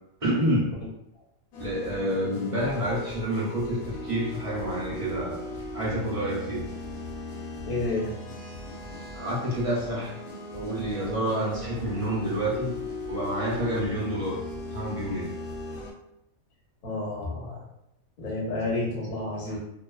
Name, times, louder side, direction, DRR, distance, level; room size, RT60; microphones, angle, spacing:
voice 1, 0.2-0.7 1.6-5.4 5.7-6.7 9.1-10.1 10.5-12.7 13.1-14.4 14.7-15.3, right 1 dB, 45° right, -6 dB, 0.4 m, -28 dB
sound 1, 1.5-15.9, left 2 dB, 80° left, 1.0 m, -38 dB
voice 2, 7.6-8.1 16.8-17.6 18.2-19.6, left 2 dB, 45° left, -4 dB, 0.8 m, -30 dB
2.4 x 2.3 x 2.2 m, 0.80 s
omnidirectional pair, 1.4 m